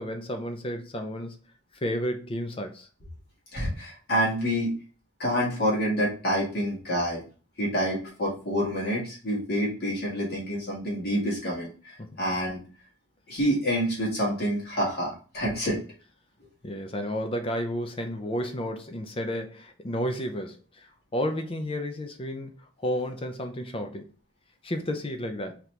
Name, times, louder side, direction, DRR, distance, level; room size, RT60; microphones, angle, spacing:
voice 1, 0.0-1.4 1.8-2.9 12.0-12.2 16.6-22.5 22.8-24.1 24.6-25.6, equal, 25° left, 0.5 m, -32 dB
voice 2, 3.5-4.7 5.2-7.2 7.6-12.6 13.3-15.8, equal, 45° left, 1.7 m, -27 dB
4.1 x 2.9 x 3.2 m
head